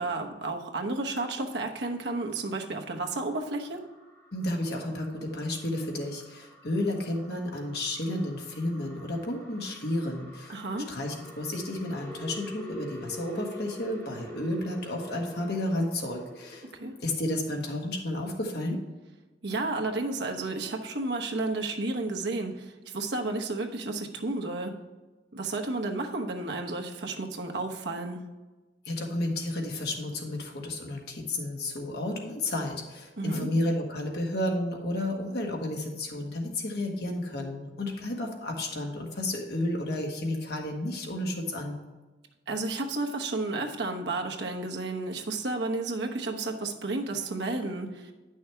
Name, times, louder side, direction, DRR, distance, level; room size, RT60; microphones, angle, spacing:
voice 1, 0.0-3.8 10.5-10.9 16.7-16.9 19.4-24.7 25.3-28.2 33.2-33.5 42.5-48.1, right 2 dB, 70° right, 3 dB, 1.0 m, -32 dB
sound 1, 1.9-17.1, left 1 dB, 15° left, 2.6 m, -47 dB
voice 2, 4.3-10.6 10.9-16.7 17.0-18.8 28.8-41.8, left 1 dB, 65° left, 1 dB, 1.6 m, -32 dB
10.0 x 6.3 x 3.5 m, 1.2 s
head